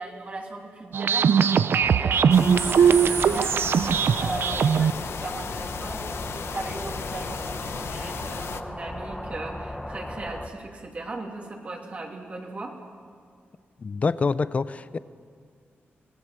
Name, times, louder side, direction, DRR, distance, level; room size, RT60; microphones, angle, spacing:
voice 1, 0.0-6.0 6.3-12.7, right 2 dB, 35° right, 1 dB, 2.8 m, -38 dB
sound 1, 0.9-4.9, right 7 dB, 70° right, 0.6 m, -20 dB
sound 2, 1.8-10.5, left 1 dB, 5° left, 1.2 m, -36 dB
sound 3, 2.3-8.6, left 7 dB, 90° left, 0.9 m, -36 dB
voice 2, 13.8-15.0, left 4 dB, 35° left, 15 dB, 0.6 m, -26 dB
26.5 x 19.5 x 7.6 m, 2.1 s
wide cardioid pair, 160°, 4 cm